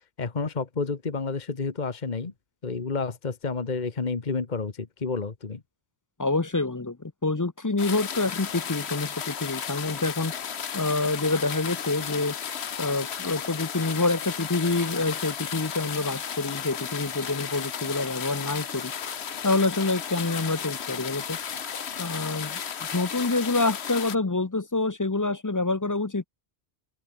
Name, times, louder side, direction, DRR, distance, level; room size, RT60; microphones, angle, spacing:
voice 1, 0.2-2.3 2.6-5.6, left 4 dB, 45° left, 1.5 m, -30 dB
voice 2, 6.2-10.3 10.7-12.4 12.8-18.9 19.4-21.4 22.0-22.6 22.9-26.3, left 3 dB, 20° left, 0.7 m, -27 dB
sound 1, 7.8-24.2, left 7 dB, 80° left, 1.3 m, -34 dB
open air
omnidirectional pair, 1.1 m